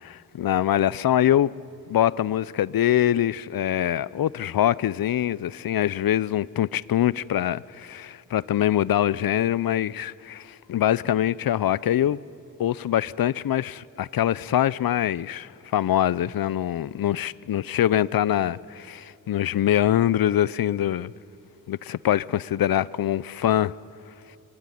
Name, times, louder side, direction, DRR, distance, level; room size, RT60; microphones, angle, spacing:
voice 1, 0.4-1.5 1.9-12.2 12.6-21.1 21.7-23.7, left 11 dB, 75° left, 0.6 m, -24 dB
25.0 x 24.5 x 9.9 m
wide cardioid pair, 130°, 35 cm